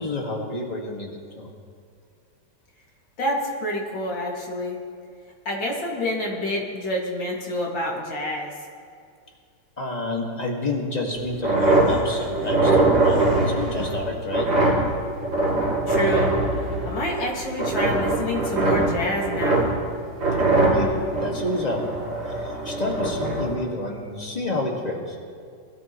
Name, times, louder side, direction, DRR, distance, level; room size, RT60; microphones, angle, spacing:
voice 1, 0.0-1.5 9.8-14.5 20.5-21.9 22.3-25.2, left 2 dB, 20° left, 0 dB, 1.7 m, -29 dB
voice 2, 3.2-4.8 5.5-8.5 15.9-16.3 16.8-19.7, left 1 dB, 70° left, -2 dB, 2.8 m, -27 dB
sound 1, 11.2-17.3 17.6-19.9 20.2-23.5, right 2 dB, 75° right, 3.5 m, -22 dB
21.0 x 12.5 x 3.0 m, 2.3 s
omnidirectional pair, 2.2 m